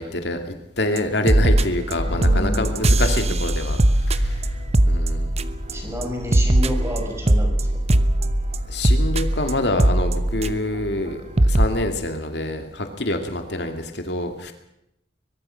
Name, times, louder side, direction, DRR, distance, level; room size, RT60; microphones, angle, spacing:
voice 1, 0.0-4.5 4.9-5.3 8.6-14.5, left 1 dB, 65° left, 6 dB, 2.4 m, -26 dB
sound 1, 1.0-1.1 1.3-1.9 2.2-5.7 6.0-10.8 11.1-11.2 11.4-11.7, right 1 dB, 35° right, 1.0 m, -19 dB
sound 2, 2.0-11.8, left 1 dB, 85° left, 2.3 m, -32 dB
voice 2, 2.1-3.3 5.7-7.7, equal, 15° right, 2 dB, 5.8 m, -31 dB
22.5 x 22.0 x 5.8 m, 0.81 s
head